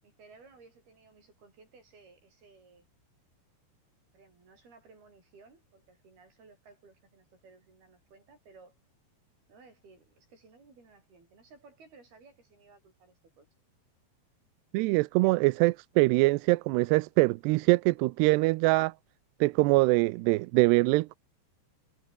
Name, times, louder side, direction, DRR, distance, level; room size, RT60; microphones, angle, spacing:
voice 1, 0.0-2.9 4.1-8.7 9.5-13.5 15.2-15.4, right 4 dB, 65° right, 9.9 m, -57 dB
voice 2, 14.7-18.9 19.4-21.2, right 22 dB, 85° right, 2.7 m, -23 dB
omnidirectional pair, 4.9 m